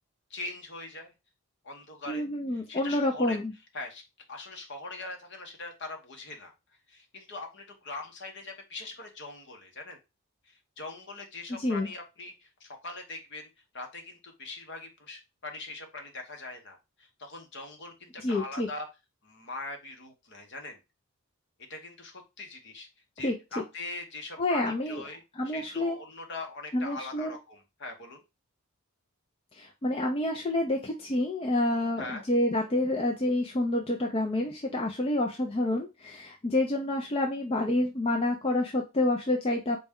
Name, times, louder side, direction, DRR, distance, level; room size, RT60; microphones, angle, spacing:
voice 1, 0.3-1.1 1.6-2.3 2.5-3.4 3.7-4.0 4.3-6.5 6.9-10.0 10.4-13.5 13.7-18.9 19.2-20.8 21.7-22.9 23.2-28.2 32.0-32.2, left 2 dB, 55° left, 4 dB, 0.9 m, -42 dB
voice 2, 2.1-3.5 11.5-11.9 18.2-18.7 23.2-23.6 24.4-25.0 25.4-26.0 26.7-27.3 29.5-39.8, left 1 dB, 25° left, 1 dB, 0.4 m, -28 dB
4.1 x 2.2 x 3.5 m, 0.26 s
head